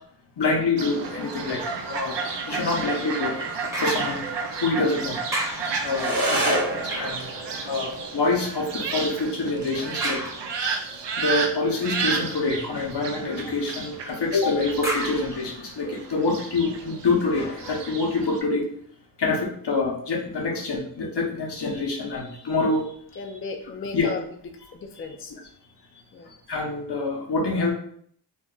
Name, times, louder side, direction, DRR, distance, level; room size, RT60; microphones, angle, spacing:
voice 1, 0.4-2.2 2.4-3.4 3.8-4.3 4.6-5.2 5.8-7.3 7.6-10.6 11.2-18.6 19.2-22.9 23.9-24.1 26.5-27.7, left 3 dB, 75° left, -1 dB, 0.9 m, -26 dB
Fowl, 0.8-18.4, right 5 dB, 90° right, 0.6 m, -32 dB
sound 1, 3.7-4.9 5.3-8.1 10.0-11.0 14.8-16.3 16.9-17.0, equal, 5° right, 0.8 m, -35 dB
sound 2, 5.9-14.9, right 1 dB, 55° right, 1.0 m, -33 dB
voice 2, 23.2-24.2 24.7-25.3 26.1-26.3, left 3 dB, 35° left, 4 dB, 0.4 m, -35 dB
2.5 x 2.1 x 3.7 m, 0.63 s
cardioid pair, 60°, 41 cm